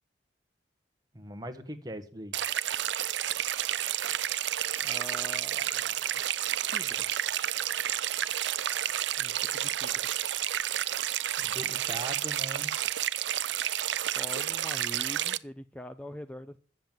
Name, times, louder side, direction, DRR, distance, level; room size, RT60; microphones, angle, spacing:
voice 1, 1.1-2.3 11.4-12.7, equal, 20° right, 7 dB, 1.4 m, -40 dB
sound 1, 2.3-15.4, right 12 dB, 85° right, 0.5 m, -30 dB
voice 2, 4.8-6.1 6.7-7.1 9.2-10.0 14.2-16.6, equal, 5° left, 9 dB, 0.5 m, -44 dB
10.0 x 7.3 x 9.2 m, 0.42 s
head